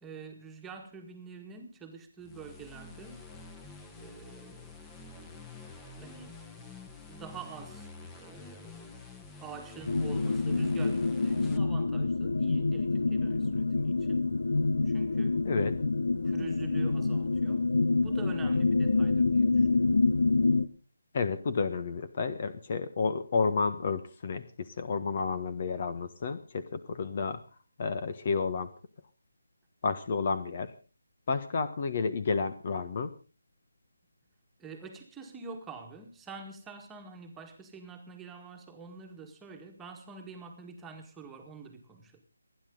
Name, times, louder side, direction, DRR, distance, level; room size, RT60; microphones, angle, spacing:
voice 1, 0.0-3.2 4.0-4.8 6.0-6.4 7.1-8.9 9.4-14.3 14.9-15.4 16.2-17.7 18.0-20.0 34.6-42.2, right 5 dB, 10° right, 3 dB, 1.9 m, -47 dB
sound 1, 2.2-11.6, left 4 dB, 10° left, 1.4 m, -48 dB
sound 2, 9.9-20.7, left 3 dB, 65° left, 1.2 m, -27 dB
voice 2, 15.4-15.8 21.1-27.4 27.8-28.7 29.8-30.7 31.3-33.1, left 4 dB, 40° left, 13 dB, 1.3 m, -31 dB
29.0 x 10.5 x 3.9 m, 0.34 s
figure-of-eight pair, 160°, 0 cm